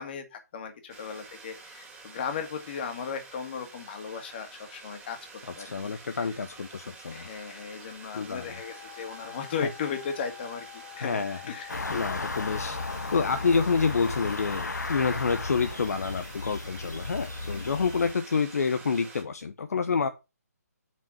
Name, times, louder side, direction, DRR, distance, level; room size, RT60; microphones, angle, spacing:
voice 1, 0.0-5.2 5.6-6.3 7.1-12.1 17.5-17.8, left 6 dB, 35° left, 6 dB, 2.1 m, -37 dB
sound 1, 0.9-19.2, right 4 dB, 10° right, 3.2 m, -48 dB
voice 2, 5.6-7.3 8.1-8.6 11.0-11.4 11.9-12.8 13.1-20.1, left 5 dB, 60° left, 9 dB, 0.9 m, -28 dB
Wind instrument woodwind instrument, 8.4-13.7, left 21 dB, 20° left, 0.4 m, -47 dB
sound 2, 11.7-18.1, left 3 dB, 80° left, 1.3 m, -35 dB
7.7 x 5.6 x 5.6 m, 0.26 s
figure-of-eight pair, 145°, 9 cm